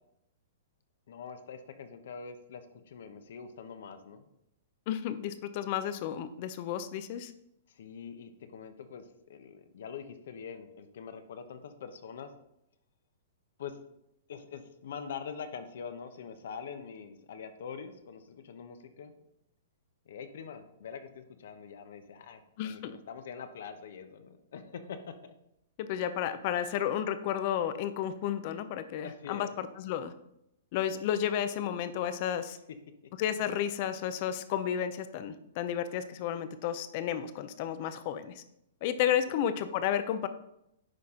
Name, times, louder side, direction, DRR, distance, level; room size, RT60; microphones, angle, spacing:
voice 1, 1.1-4.3 7.7-9.0 9.3-12.3 13.6-13.8 14.3-19.2 20.1-25.3 29.0-29.5 39.0-39.4, left 6 dB, 70° left, 8 dB, 0.9 m, -44 dB
voice 2, 4.9-7.3 22.6-22.9 25.8-30.1 30.7-32.6 33.2-38.4 38.8-40.3, left 10 dB, 45° left, 11 dB, 0.6 m, -32 dB
10.0 x 4.1 x 3.8 m, 0.81 s
hypercardioid pair, 145°, 0 cm